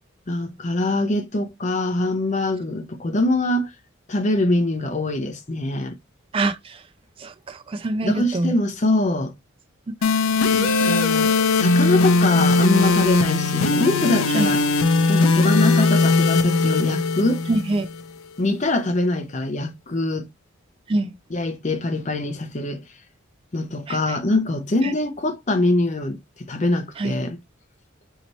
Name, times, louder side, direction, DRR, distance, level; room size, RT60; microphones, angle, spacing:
voice 1, 0.3-3.7 4.1-5.9 8.0-9.3 10.5-14.6 15.1-17.4 18.4-20.3 21.3-22.8 23.5-27.4, left 2 dB, 35° left, 0.6 m, -23 dB
voice 2, 6.3-6.8 7.2-8.5 10.0-10.1 14.3-14.5 17.5-17.9 20.9-21.1 23.9-24.2 24.8-24.9 27.0-27.2, right 2 dB, 25° right, 0.3 m, -25 dB
sound 1, 10.0-18.0, left 3 dB, 80° left, 0.5 m, -19 dB
4.1 x 2.8 x 3.0 m
head